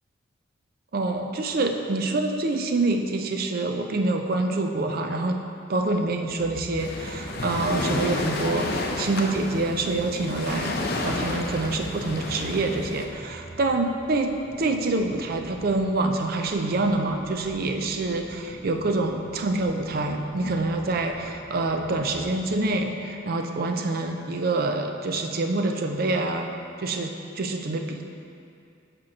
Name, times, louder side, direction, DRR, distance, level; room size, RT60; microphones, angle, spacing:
voice 1, 0.9-5.4 5.7-10.7 11.0-26.5 26.8-28.0, right 2 dB, 50° right, 4 dB, 0.5 m, -26 dB
sound 1, 6.2-22.9, equal, 15° right, 1.0 m, -46 dB
Waves surf, 6.8-13.1, left 2 dB, 55° left, 0.6 m, -30 dB
4.9 x 4.5 x 6.0 m, 2.5 s
head